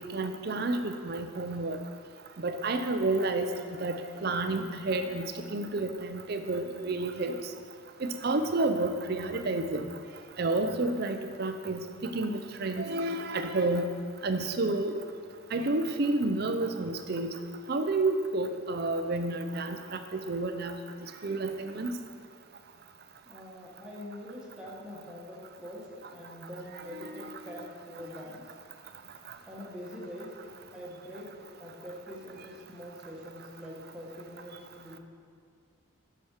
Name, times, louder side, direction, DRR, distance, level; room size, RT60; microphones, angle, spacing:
voice 1, 0.0-1.8 2.4-7.4 8.0-9.8 10.4-13.9 14.2-15.0 15.5-17.3 17.7-20.7 21.2-22.0 26.9-27.3, right 2 dB, 50° right, 7 dB, 0.5 m, -30 dB
voice 2, 23.2-28.5 29.5-30.4 30.7-31.3 31.6-35.0, left 1 dB, 5° right, -5 dB, 1.5 m, -44 dB
7.2 x 6.0 x 6.5 m, 2.1 s
head